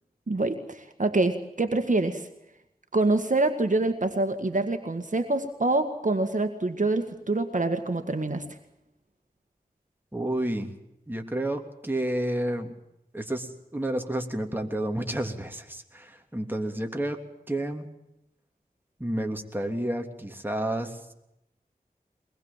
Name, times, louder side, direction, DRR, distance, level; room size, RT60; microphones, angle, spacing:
voice 1, 0.3-2.3 2.9-8.5, right 2 dB, 55° right, 6 dB, 1.9 m, -26 dB
voice 2, 10.1-10.7 11.1-12.7 13.1-17.2 17.5-17.9 19.0-21.1, right 1 dB, 15° right, 4 dB, 3.1 m, -30 dB
23.0 x 20.5 x 7.4 m, 0.84 s
wide cardioid pair, 55°, 16 cm